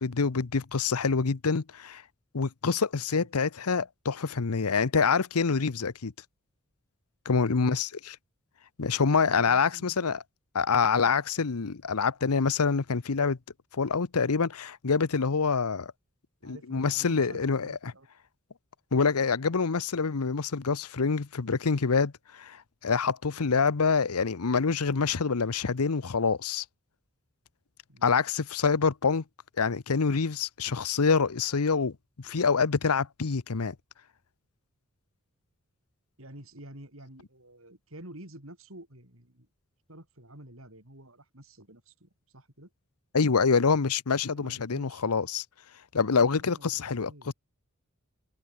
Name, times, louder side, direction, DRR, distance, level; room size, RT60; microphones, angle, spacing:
voice 1, 0.0-2.0 2.3-6.1 7.3-7.9 8.8-10.2 10.5-13.4 13.7-15.9 16.4-17.9 18.9-22.6 22.8-26.6 28.0-29.2 29.6-33.7 43.1-45.4 45.9-47.3, left 5 dB, 90° left, 0.8 m, -26 dB
voice 2, 9.4-10.1 16.4-18.1 27.9-28.2 36.2-39.5 39.9-42.7 44.3-45.1 46.2-47.3, right 1 dB, 65° right, 7.2 m, -49 dB
head